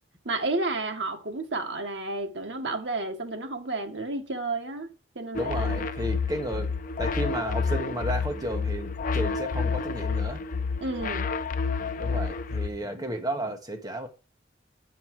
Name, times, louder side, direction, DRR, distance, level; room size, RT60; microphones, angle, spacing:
voice 1, 0.2-5.9 10.8-11.3 12.9-13.0, right 2 dB, 70° right, 1.4 m, -32 dB
sound 1, 5.3-12.7, left 4 dB, 45° left, 0.6 m, -29 dB
voice 2, 5.3-6.7 7.0-10.4 12.0-14.1, right 1 dB, 20° right, 1.3 m, -33 dB
8.7 x 5.9 x 4.7 m
head